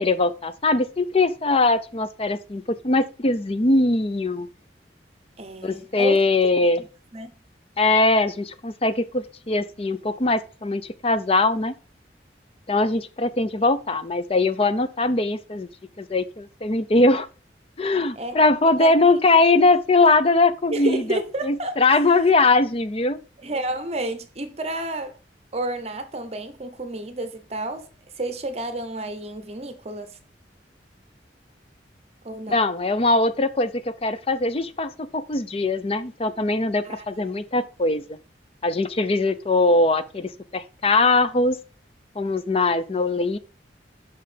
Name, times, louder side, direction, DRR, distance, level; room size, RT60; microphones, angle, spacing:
voice 1, 0.0-4.5 5.6-6.8 7.8-11.7 12.7-15.7 16.0-17.3 17.8-21.2 21.4-23.2 32.5-38.0 38.6-41.6 42.2-43.4, left 2 dB, 35° left, 0.5 m, -21 dB
voice 2, 5.4-6.2 6.6-6.9 7.1-7.3 18.2-18.4 18.7-18.9 20.7-21.8 23.4-25.2 25.5-27.9 28.2-30.2 32.2-32.6 36.8-37.0 37.5-37.6, right 2 dB, 35° right, 0.8 m, -30 dB
5.8 x 5.4 x 5.0 m
head